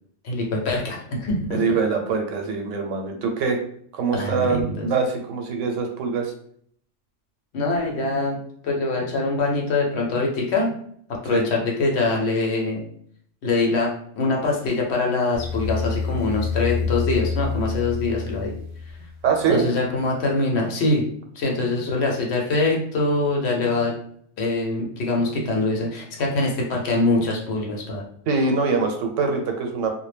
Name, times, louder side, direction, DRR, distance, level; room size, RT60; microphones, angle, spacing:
voice 1, 0.2-1.6 4.1-4.9 7.5-8.4 8.6-10.7 11.2-12.9 13.4-18.6 19.5-21.0 21.4-23.9 24.4-28.0, left 3 dB, 65° left, -1 dB, 0.9 m, -23 dB
voice 2, 1.5-3.6 3.9-6.3 11.3-11.4 19.2-19.6 28.3-29.9, right 5 dB, 90° right, 3 dB, 1.0 m, -23 dB
sound 1, 15.3-19.4, left 5 dB, 70° right, 0.3 m, -28 dB
2.2 x 2.0 x 3.2 m, 0.63 s
omnidirectional pair, 1.3 m